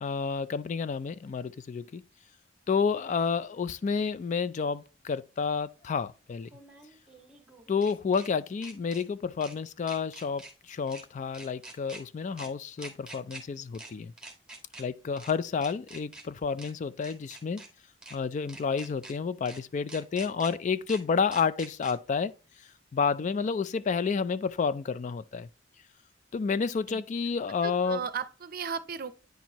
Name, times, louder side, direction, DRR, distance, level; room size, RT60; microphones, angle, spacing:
voice 1, 0.0-2.0 2.7-6.5 7.7-10.4 10.7-14.1 14.8-17.6 18.1-22.3 22.9-25.5 26.3-28.0, left 5 dB, 40° left, 0.3 m, -30 dB
sound 1, 4.0-4.1 6.4-8.3 8.6-9.0 9.4-9.6 9.9-10.5 10.9-11.0 11.3-12.0 12.4-12.5 12.8-13.4 13.7-13.9 14.2-14.8 15.2-15.3 15.6-16.2 16.6-16.7 17.0-17.7 18.0-18.2 18.5-19.1 19.5-19.6 19.9-20.5 20.9-21.0 21.3-21.9, right 2 dB, 5° right, 1.4 m, -46 dB
voice 2, 27.6-29.3, right 6 dB, 50° right, 0.6 m, -36 dB
9.2 x 4.4 x 2.9 m
head